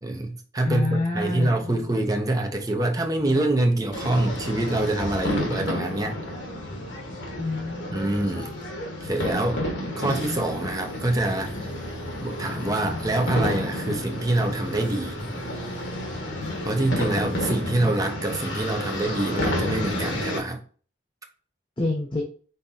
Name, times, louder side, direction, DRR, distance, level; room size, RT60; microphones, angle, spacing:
voice 1, 0.0-6.2 7.9-8.5 9.0-9.6 10.0-11.7 12.2-15.2 16.6-20.6, right 2 dB, 20° right, 0.7 m, -25 dB
voice 2, 0.6-1.6 7.4-8.2 21.8-22.2, left 2 dB, 25° left, 0.8 m, -28 dB
sound 1, 1.2-17.4, left 1 dB, 45° left, 2.4 m, -41 dB
sound 2, 3.9-20.4, left 1 dB, 80° left, 1.4 m, -31 dB
5.5 x 3.6 x 2.7 m
head